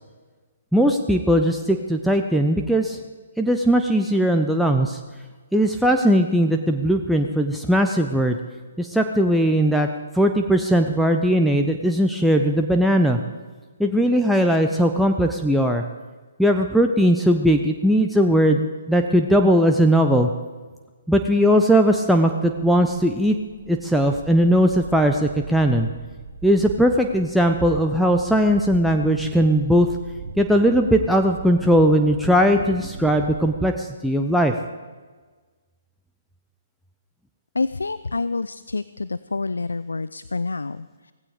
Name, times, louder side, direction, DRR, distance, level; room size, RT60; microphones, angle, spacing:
voice 1, 0.7-3.0 3.4-5.0 5.5-8.4 8.8-9.9 10.1-13.2 13.8-15.8 16.4-20.3 21.1-23.4 23.7-25.9 26.4-29.9 30.4-34.5, equal, ahead, 3 dB, 0.8 m, -19 dB
sound 1, 22.5-33.6, right 5 dB, 50° right, 2.5 m, -38 dB
voice 2, 37.6-41.1, left 3 dB, 75° left, 15 dB, 0.4 m, -28 dB
17.0 x 16.0 x 5.0 m, 1.4 s
figure-of-eight pair, 130°, 0 cm